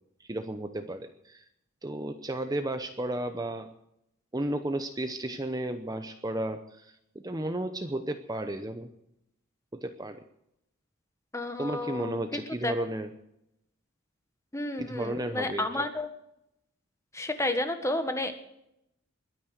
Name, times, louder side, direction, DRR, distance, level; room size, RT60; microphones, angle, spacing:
voice 1, 0.2-1.4 1.8-3.7 4.3-8.9 9.7-10.2 11.6-13.1 14.8-15.9, right 1 dB, 20° right, 8 dB, 0.8 m, -33 dB
voice 2, 11.3-12.7 14.5-16.1 17.1-18.3, left 2 dB, 15° left, 7 dB, 1.5 m, -31 dB
21.5 x 9.2 x 6.5 m, 0.80 s
head